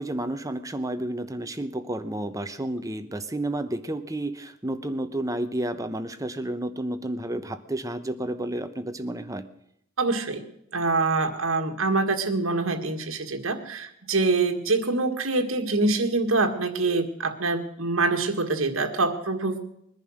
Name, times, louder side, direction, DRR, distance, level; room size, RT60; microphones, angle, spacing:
voice 1, 0.0-9.5, right 1 dB, 15° right, 10 dB, 0.8 m, -31 dB
voice 2, 10.0-10.4 10.7-19.6, right 3 dB, 80° right, 5 dB, 1.9 m, -25 dB
21.0 x 10.5 x 6.4 m, 0.75 s
head